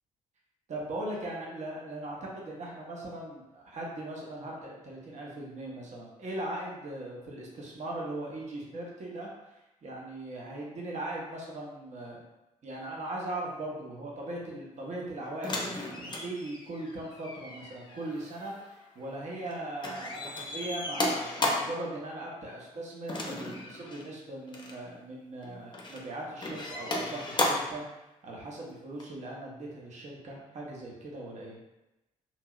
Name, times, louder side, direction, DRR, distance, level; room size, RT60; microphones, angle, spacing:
voice 1, 0.7-9.3 9.8-12.2 12.6-15.8 16.0-27.8 28.2-31.6, right 1 dB, 40° right, -3 dB, 0.8 m, -39 dB
sound 1, 15.4-19.5 19.8-21.8 23.1-24.1 24.5-24.8 25.4-26.0 26.4-27.8 29.0-29.1, left 2 dB, 25° left, 0.6 m, -34 dB
2.9 x 2.7 x 2.3 m, 0.95 s
figure-of-eight pair, 40°, 18 cm